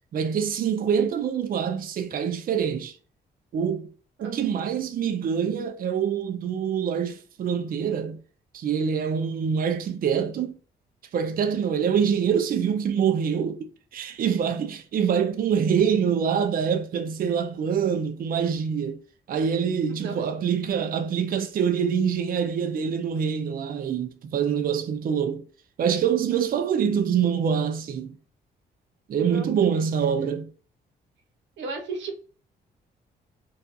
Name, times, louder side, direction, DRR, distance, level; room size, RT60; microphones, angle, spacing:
voice 1, 0.1-3.0 3.5-3.9 4.2-8.2 8.5-10.6 11.1-13.7 13.9-19.0 19.3-25.4 25.8-28.2 29.1-30.5, right 7 dB, 50° right, 0.4 m, -25 dB
voice 2, 26.3-26.6 29.2-29.5 31.6-32.2, right 4 dB, 85° right, 0.8 m, -35 dB
2.4 x 2.4 x 2.5 m
cardioid pair, 90°, 19 cm